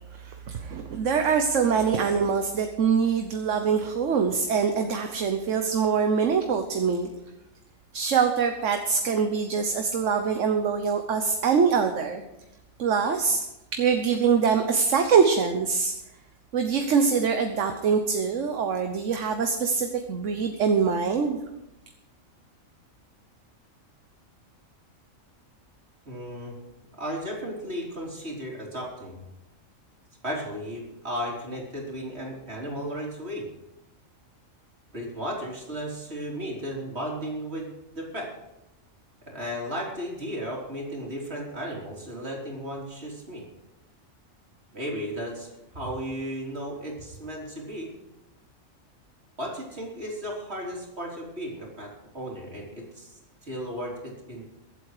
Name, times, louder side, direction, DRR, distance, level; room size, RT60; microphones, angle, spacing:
voice 1, 0.2-7.1 7.9-12.2 12.8-13.4 13.7-15.9 16.5-21.4, right 6 dB, 65° right, 6 dB, 1.3 m, -24 dB
voice 2, 26.1-26.5 27.0-29.2 30.2-33.5 34.9-38.3 39.2-43.4 44.7-47.9 49.4-54.4, equal, 50° right, -2 dB, 4.0 m, -35 dB
22.5 x 8.5 x 4.9 m, 0.93 s
omnidirectional pair, 1.4 m